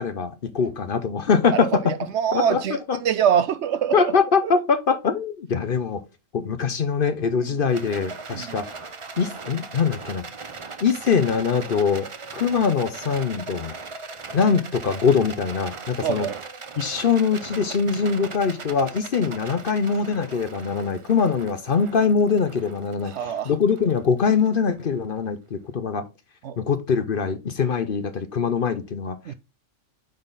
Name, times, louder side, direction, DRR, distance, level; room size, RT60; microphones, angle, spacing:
voice 1, 0.0-1.9 2.3-3.0 3.9-6.0 6.3-8.7 9.2-10.2 10.8-12.1 12.3-13.7 14.3-16.3 16.8-26.0 26.6-29.2, left 6 dB, 50° left, 0.8 m, -23 dB
voice 2, 2.1-4.1 4.4-4.5 7.4-7.5 8.3-8.5 16.0-16.4 23.1-23.5 26.4-26.6 29.3-29.4, right 8 dB, 70° right, 0.8 m, -24 dB
Rattle, 7.7-25.1, right 4 dB, 35° right, 0.6 m, -39 dB
8.9 x 3.9 x 3.9 m
omnidirectional pair, 1.3 m